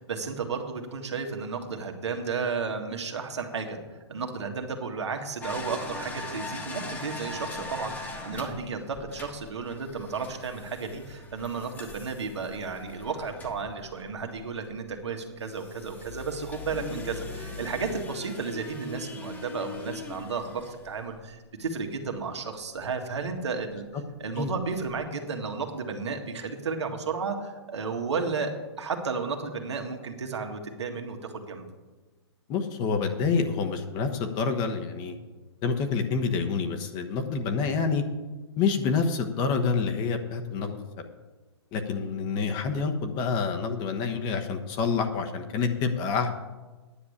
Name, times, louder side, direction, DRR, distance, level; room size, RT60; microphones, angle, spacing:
voice 1, 0.0-23.9 24.2-31.7, right 5 dB, 80° right, 4 dB, 1.8 m, -33 dB
sound 1, 5.4-14.7 15.4-21.3 22.8-22.9 23.3-23.4 24.4-24.5 24.7-24.9, left 2 dB, 15° left, 1.4 m, -40 dB
voice 2, 32.5-35.2 35.6-38.0 38.6-41.0 41.7-46.3, left 5 dB, 30° left, 5 dB, 1.2 m, -27 dB
10.0 x 6.3 x 8.6 m, 1.2 s
hypercardioid pair, 135°, 14 cm